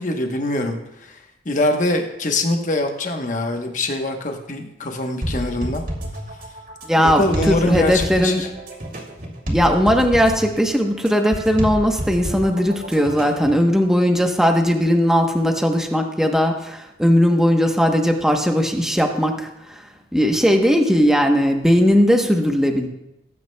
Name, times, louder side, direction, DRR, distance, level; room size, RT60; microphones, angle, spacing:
voice 1, 0.0-5.8 7.0-8.5, left 2 dB, 45° left, 4 dB, 1.1 m, -23 dB
sound 1, 5.2-13.7, equal, 55° right, 2.5 m, -29 dB
voice 2, 6.8-8.4 9.5-19.8 20.1-22.9, equal, 5° right, 3 dB, 0.9 m, -18 dB
19.0 x 9.4 x 2.3 m, 0.88 s
head